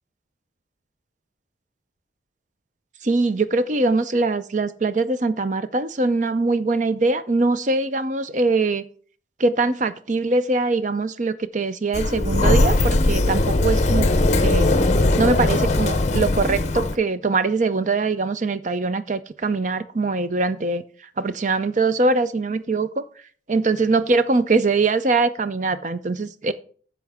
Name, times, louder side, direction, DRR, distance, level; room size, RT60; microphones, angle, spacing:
voice 1, 3.0-8.8 9.4-14.1 14.4-14.7 15.2-20.8 21.2-23.0 23.5-26.5, right 3 dB, 40° right, 13 dB, 0.6 m, -22 dB
Sliding door, 11.9-17.0, left 2 dB, 40° left, 0.7 m, -19 dB
10.5 x 7.2 x 3.5 m, 0.44 s
head